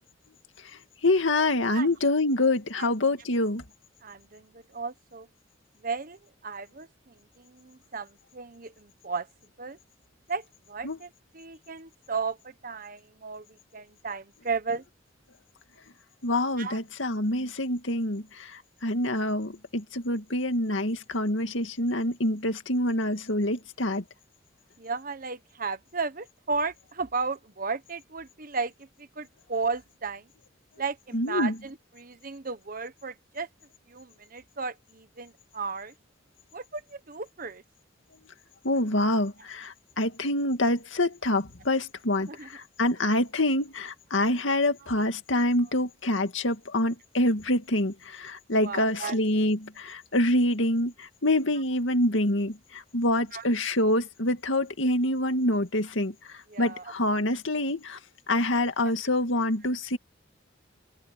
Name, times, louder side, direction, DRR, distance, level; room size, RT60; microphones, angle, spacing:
voice 1, 1.0-3.6 10.8-11.0 16.2-24.0 31.1-31.6 38.6-58.0 58.3-60.0, left 1 dB, 85° left, 2.2 m, -26 dB
voice 2, 4.0-5.3 5.8-9.3 9.6-9.8 10.3-14.8 16.6-16.8 24.8-30.3 30.8-33.5 33.9-35.9 36.5-37.6 42.3-42.5 48.5-49.2 53.3-53.4 56.5-56.9 58.8-58.9, right 4 dB, 45° right, 1.3 m, -35 dB
open air
head